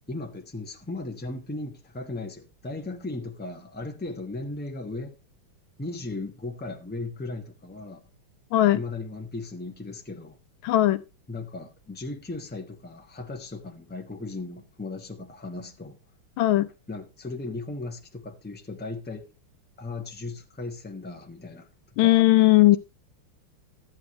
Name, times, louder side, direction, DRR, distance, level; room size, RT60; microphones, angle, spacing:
voice 1, 0.1-5.2 5.8-8.0 8.7-10.4 11.3-16.0 16.9-19.3 19.8-21.7 22.0-22.2, left 2 dB, 5° left, 1.0 m, -36 dB
voice 2, 10.6-11.0 16.4-16.7 22.0-22.8, left 16 dB, 80° left, 1.6 m, -18 dB
13.0 x 9.2 x 3.1 m
omnidirectional pair, 2.2 m